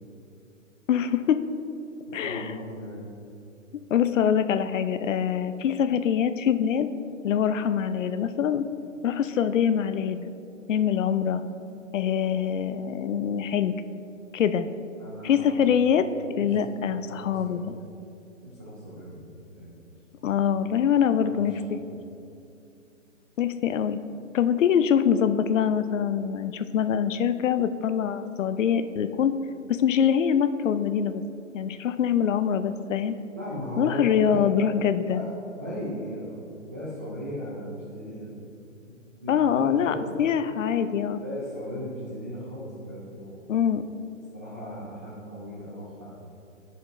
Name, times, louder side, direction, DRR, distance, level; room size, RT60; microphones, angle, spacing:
voice 1, 0.9-1.4 2.1-2.4 3.9-6.9 7.2-8.6 9.0-10.3 10.7-11.4 11.9-13.7 14.3-14.6 15.2-16.1 16.4-17.8 20.2-21.8 23.4-24.0 24.3-29.3 29.7-31.2 31.5-33.2 33.8-35.2 39.3-41.2 43.5-43.8, left 8 dB, 70° left, 11 dB, 0.6 m, -24 dB
voice 2, 2.1-3.1 15.0-15.6 16.2-16.5 17.1-17.6 18.4-19.8 20.3-20.4 21.0-21.6 21.9-22.0 33.3-34.4 35.0-38.4 38.9-40.1 41.2-43.7 44.3-46.2, equal, 10° right, -9 dB, 0.3 m, -37 dB
15.0 x 5.1 x 2.6 m, 2.6 s
hypercardioid pair, 135°, 39 cm